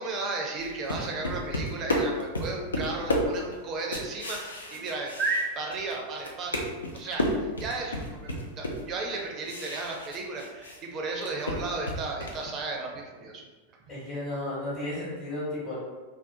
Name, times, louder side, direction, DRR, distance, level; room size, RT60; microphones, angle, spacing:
voice 1, 0.0-13.5, right 3 dB, 30° right, 1 dB, 0.5 m, -34 dB
sound 1, 0.6-5.9 6.2-10.8 11.1-12.5, left 1 dB, 75° left, 0.4 m, -32 dB
voice 2, 13.9-15.8, left 1 dB, 35° left, -9 dB, 1.0 m, -33 dB
2.5 x 2.2 x 2.6 m, 1.3 s
figure-of-eight pair, 90°, 0 cm